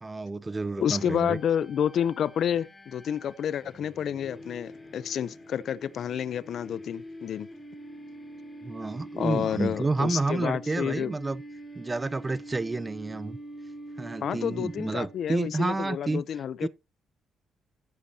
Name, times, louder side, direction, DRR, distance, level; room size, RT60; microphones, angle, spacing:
voice 1, 0.0-1.4 8.6-11.4 11.8-13.4 14.0-16.2 16.6-16.7, right 3 dB, 20° right, 0.5 m, -30 dB
voice 2, 0.8-7.5 9.2-11.1 14.2-16.7, left 9 dB, 65° left, 0.6 m, -29 dB
sound 1, 1.0-15.5, right 1 dB, 25° left, 2.6 m, -45 dB
15.5 x 8.3 x 2.8 m
cardioid pair, 90°, 0 cm